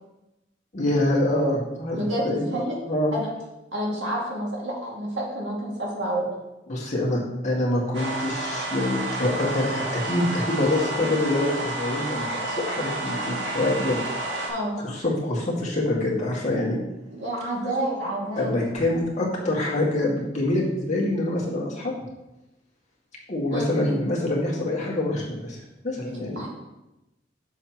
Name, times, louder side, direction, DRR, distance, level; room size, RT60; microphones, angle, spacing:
voice 1, 0.7-2.5 2.9-3.1 6.7-14.0 14.8-16.8 18.4-21.9 23.3-25.6 25.8-26.4, left 1 dB, 40° left, -4 dB, 1.9 m, -25 dB
voice 2, 1.9-2.8 3.1-3.3 3.7-6.3 14.5-14.8 17.1-18.6 23.5-23.7 26.4-26.5, right 1 dB, 85° right, -3 dB, 2.2 m, -29 dB
sound 1, 7.9-14.5, right 2 dB, 70° right, 1.7 m, -30 dB
7.1 x 7.1 x 3.0 m, 0.98 s
head